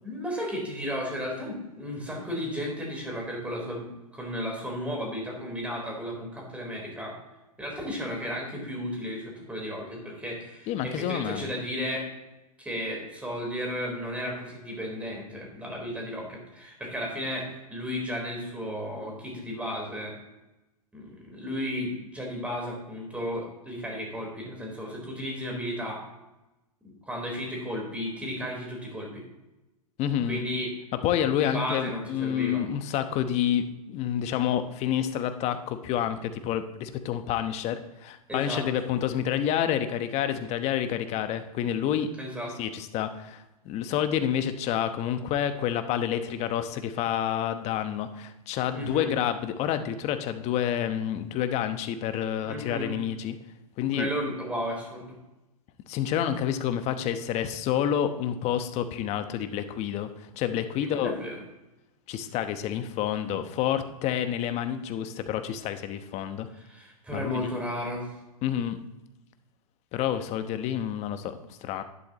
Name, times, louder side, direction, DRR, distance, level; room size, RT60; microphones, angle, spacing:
voice 1, 0.0-3.9 4.1-7.1 7.6-12.1 12.6-20.1 20.9-26.0 26.8-29.2 30.3-30.7 31.3-32.6 38.3-38.7 42.2-42.5 48.7-49.1 52.4-52.9 53.9-55.1 61.0-61.4 66.5-68.1, equal, 5° right, -1 dB, 4.0 m, -34 dB
voice 2, 10.7-11.5 30.0-30.4 31.0-42.1 42.6-53.4 53.8-54.1 55.9-61.1 62.1-66.5 67.1-67.5 68.4-68.8 69.9-71.8, left 10 dB, 35° left, 9 dB, 1.0 m, -29 dB
11.5 x 11.0 x 3.0 m, 0.98 s
hypercardioid pair, 115°, 19 cm